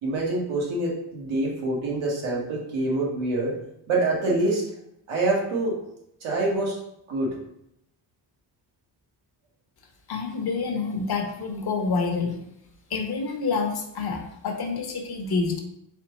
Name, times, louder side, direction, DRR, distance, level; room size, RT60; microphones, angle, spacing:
voice 1, 0.0-3.5 3.9-4.6 5.1-5.8 6.2-6.7 7.1-7.3, right 2 dB, 90° right, -3 dB, 1.5 m, -25 dB
voice 2, 10.1-12.4 12.9-15.6, left 4 dB, 55° left, 3 dB, 0.9 m, -27 dB
4.3 x 3.5 x 3.0 m, 0.78 s
cardioid pair, 110°, 46 cm